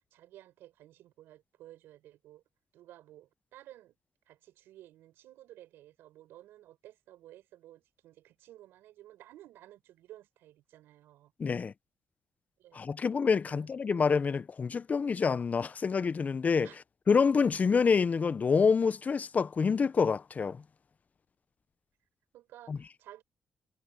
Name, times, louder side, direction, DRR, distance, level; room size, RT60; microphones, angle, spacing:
voice 1, 0.1-2.4 2.7-4.0 4.3-11.3 12.6-12.9 13.5-14.0 16.6-16.8 22.3-23.2, right 14 dB, 85° right, 6.5 m, -54 dB
voice 2, 11.4-11.7 12.7-16.7 17.1-20.6 22.7-22.8, left 5 dB, 45° left, 0.6 m, -27 dB
supercardioid pair, 60°, 4 cm